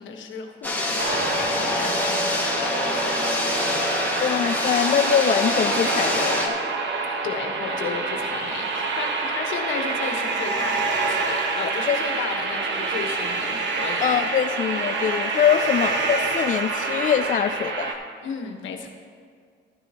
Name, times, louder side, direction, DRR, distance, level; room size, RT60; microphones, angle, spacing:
voice 1, 0.0-3.5 7.2-14.1 15.5-15.6 18.2-18.9, left 5 dB, 75° left, 4 dB, 1.3 m, -34 dB
sound 1, 0.6-6.5, left 2 dB, 10° left, 1.9 m, -26 dB
sound 2, 1.0-17.9, right 3 dB, 65° right, 1.2 m, -27 dB
voice 2, 4.2-6.5 11.9-12.0 14.0-18.0, left 8 dB, 40° left, 8 dB, 0.4 m, -23 dB
13.5 x 10.0 x 3.0 m, 2.1 s
cardioid pair, 90°, 20 cm